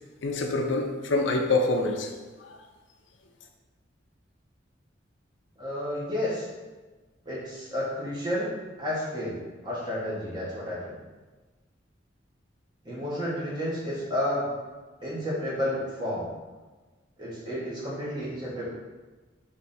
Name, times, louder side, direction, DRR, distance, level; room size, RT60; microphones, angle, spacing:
voice 1, 0.2-2.1 2.5-2.6, left 2 dB, 85° left, 3 dB, 0.6 m, -26 dB
voice 2, 5.6-6.5 7.2-8.5 8.8-9.4 9.6-10.9 12.8-14.5 15.0-16.3 17.2-18.6, left 1 dB, 25° right, -7 dB, 1.4 m, -31 dB
3.5 x 3.3 x 4.2 m, 1.3 s
head